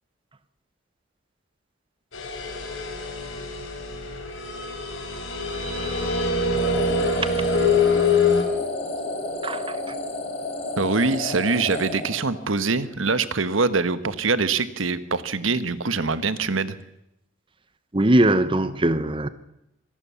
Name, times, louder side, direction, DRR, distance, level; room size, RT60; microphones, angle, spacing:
sound 1, 2.1-8.4, left 4 dB, 75° left, 4.9 m, -24 dB
sound 2, 6.5-12.7, left 2 dB, 30° left, 3.9 m, -31 dB
voice 1, 9.4-9.7 17.9-19.3, right 1 dB, 25° right, 0.9 m, -20 dB
voice 2, 10.8-16.7, right 4 dB, 80° right, 1.3 m, -24 dB
25.5 x 18.5 x 7.0 m
head